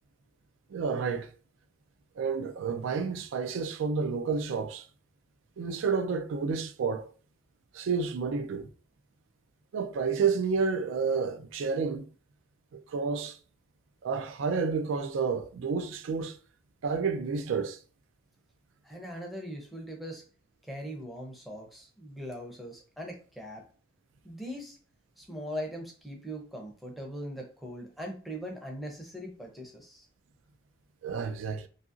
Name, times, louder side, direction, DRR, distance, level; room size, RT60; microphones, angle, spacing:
voice 1, 0.7-1.3 2.2-4.8 5.6-7.1 7.7-8.7 9.7-12.0 12.7-13.4 14.0-16.3 16.8-17.8 31.0-31.7, right 5 dB, 90° right, 0.4 m, -30 dB
voice 2, 18.8-20.2 20.6-23.6 24.2-24.8 25.2-30.1, equal, ahead, 0.5 m, -40 dB
2.8 x 2.6 x 2.4 m
head